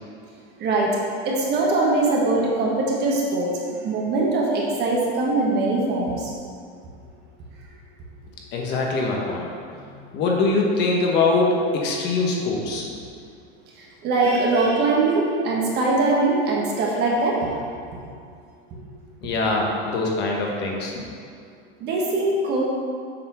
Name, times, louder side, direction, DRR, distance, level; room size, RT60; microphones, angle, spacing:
voice 1, 0.6-1.0 1.2-3.5 3.8-6.3 13.8-17.5 21.8-22.6, right 2 dB, 35° right, -3 dB, 1.4 m, -22 dB
voice 2, 8.5-9.9 10.1-12.9 19.2-21.1, left 3 dB, 35° left, -1 dB, 1.1 m, -23 dB
7.7 x 4.2 x 5.7 m, 2.3 s
supercardioid pair, 160°, 30 cm